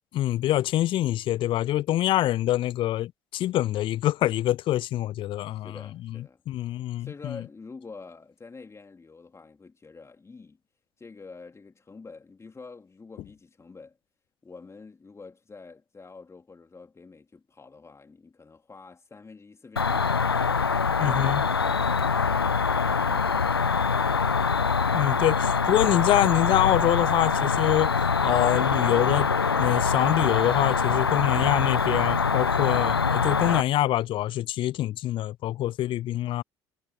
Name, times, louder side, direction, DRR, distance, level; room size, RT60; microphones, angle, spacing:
voice 1, 0.1-5.7 6.1-7.4 21.0-21.4 24.9-29.3 29.6-36.4, left 14 dB, 45° left, 0.4 m, -25 dB
voice 2, 5.5-6.4 7.0-10.6 11.0-14.0 14.4-20.3, left 4 dB, 25° left, 4.0 m, -47 dB
Cricket, 19.8-33.6, left 5 dB, 90° left, 0.6 m, -24 dB
figure-of-eight pair, 55°, 12 cm